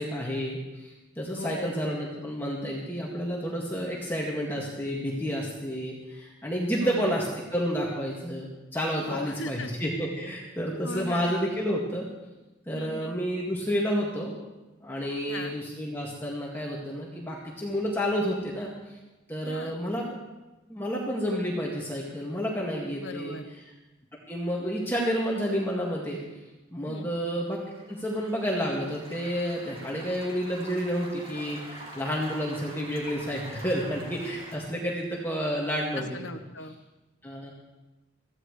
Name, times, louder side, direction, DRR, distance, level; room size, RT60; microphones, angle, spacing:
voice 1, 0.0-7.3 7.5-12.1 12.7-14.3 14.8-18.7 19.3-20.1 20.7-23.4 24.3-26.2 26.7-27.6 27.9-36.1 37.2-37.5, equal, 10° left, -4 dB, 2.0 m, -30 dB
voice 2, 1.3-1.8 6.8-7.1 9.0-9.7 10.8-11.3 12.7-13.1 15.3-15.5 19.4-19.8 23.0-23.4 26.9-27.1 35.9-36.8, left 3 dB, 65° left, 8 dB, 1.1 m, -38 dB
sound 1, 27.5-34.6, right 1 dB, 25° right, 2.8 m, -46 dB
23.0 x 15.5 x 3.3 m, 1.1 s
head